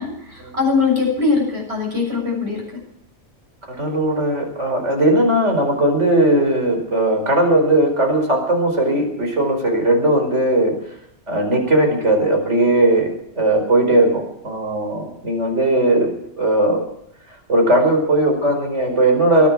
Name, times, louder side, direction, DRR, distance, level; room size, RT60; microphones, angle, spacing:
voice 1, 0.0-2.7, left 4 dB, 65° right, -1 dB, 7.7 m, -21 dB
voice 2, 3.7-10.7 11.3-16.1 16.4-16.8 17.5-19.5, right 1 dB, 90° right, 3 dB, 5.1 m, -18 dB
22.0 x 10.0 x 6.3 m, 0.76 s
omnidirectional pair, 1.2 m